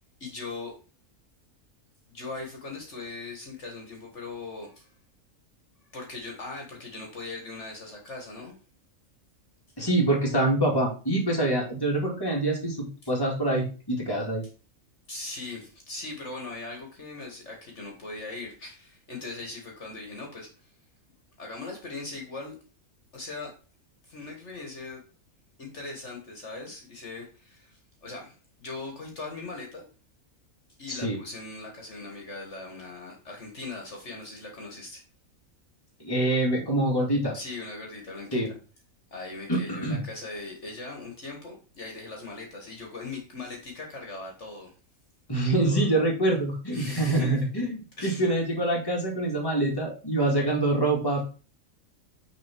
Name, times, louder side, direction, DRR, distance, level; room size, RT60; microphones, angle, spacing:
voice 1, 0.2-0.7 2.1-4.9 5.9-8.5 15.1-20.7 21.4-22.6 23.1-23.5 24.0-25.0 25.6-29.9 30.8-35.0 37.3-38.5 39.1-44.7 45.6-46.0 46.7-47.4 48.0-48.2, left 3 dB, 55° left, 1 dB, 1.8 m, -40 dB
voice 2, 9.8-14.4 30.9-31.2 36.0-37.3 38.3-38.5 39.5-40.0 45.3-51.2, right 1 dB, 15° left, -1 dB, 2.1 m, -25 dB
6.2 x 4.1 x 5.9 m, 0.35 s
omnidirectional pair, 1.4 m